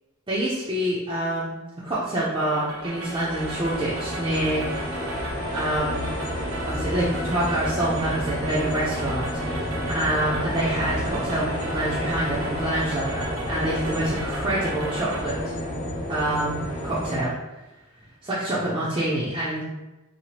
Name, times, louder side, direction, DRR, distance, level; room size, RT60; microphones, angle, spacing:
voice 1, 0.3-1.6 1.8-5.0 5.5-6.1 6.7-9.7 9.9-15.5 16.1-17.3 18.2-19.6, right 1 dB, 20° right, -9 dB, 0.4 m, -27 dB
sound 1, 2.4-15.2, right 2 dB, 75° right, 0.5 m, -36 dB
sound 2, 2.8-17.2, equal, 45° left, 0.9 m, -30 dB
2.8 x 2.4 x 2.9 m, 1.1 s
head